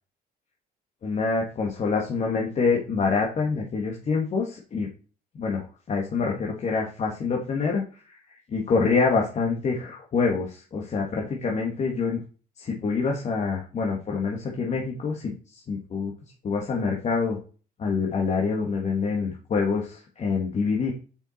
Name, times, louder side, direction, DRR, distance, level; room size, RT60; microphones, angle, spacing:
voice 1, 1.0-4.9 5.3-12.2 12.6-16.1 16.4-17.4 17.8-20.9, left 4 dB, 40° left, 0 dB, 1.7 m, -26 dB
7.1 x 5.8 x 4.1 m, 0.37 s
cardioid pair, 110°, 17 cm